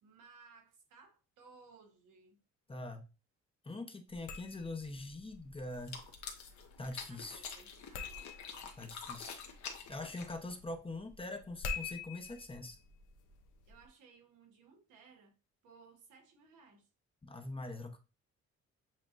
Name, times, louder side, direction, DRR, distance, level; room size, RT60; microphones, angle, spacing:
voice 1, 0.0-2.4 7.1-8.7 13.7-15.3 15.6-16.9, right 4 dB, 85° right, 1.4 m, -61 dB
voice 2, 2.7-3.1 3.6-6.0 6.8-7.5 8.8-9.4 9.9-12.8 17.2-18.0, left 2 dB, 20° left, 0.8 m, -43 dB
sound 1, 4.1-13.9, left 5 dB, 85° left, 0.8 m, -48 dB
sound 2, 5.7-10.6, left 6 dB, 65° left, 1.2 m, -47 dB
7.3 x 2.9 x 2.5 m
cardioid pair, 90°, 30 cm